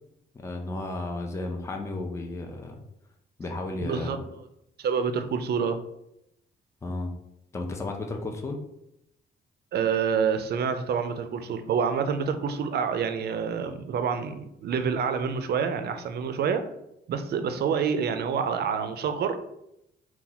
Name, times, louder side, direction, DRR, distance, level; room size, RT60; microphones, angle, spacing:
voice 1, 0.3-2.8 3.4-4.1 6.8-7.1 7.5-8.6, left 2 dB, 15° left, 2 dB, 0.5 m, -33 dB
voice 2, 3.8-4.2 4.8-5.8 9.7-16.7 17.1-19.5, right 6 dB, 55° right, 9 dB, 0.4 m, -27 dB
2.7 x 2.3 x 3.9 m, 0.82 s
cardioid pair, 90°, 20 cm